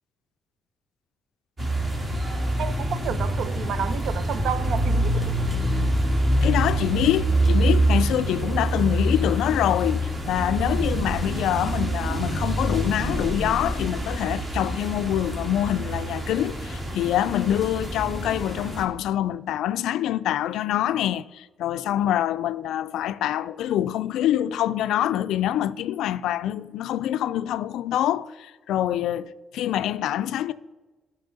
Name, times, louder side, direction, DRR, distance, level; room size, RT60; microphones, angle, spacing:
sound 1, 1.6-18.8, right 1 dB, 40° right, 1.7 m, -26 dB
voice 1, 2.6-5.3, right 8 dB, 70° right, 0.4 m, -31 dB
voice 2, 6.4-30.5, left 12 dB, 85° left, 0.3 m, -25 dB
10.5 x 5.7 x 4.0 m
cardioid pair, 90°, 0 cm